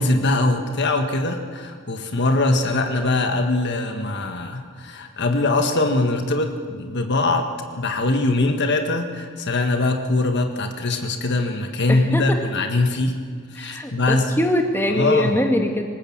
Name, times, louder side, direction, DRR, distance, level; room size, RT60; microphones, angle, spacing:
voice 1, 0.0-7.5 7.8-13.2 13.5-14.3 14.9-15.3, left 2 dB, 50° left, 5 dB, 1.6 m, -22 dB
voice 2, 11.9-12.4 13.6-15.9, left 1 dB, 10° left, 3 dB, 1.8 m, -22 dB
26.5 x 18.5 x 7.4 m, 2.1 s
head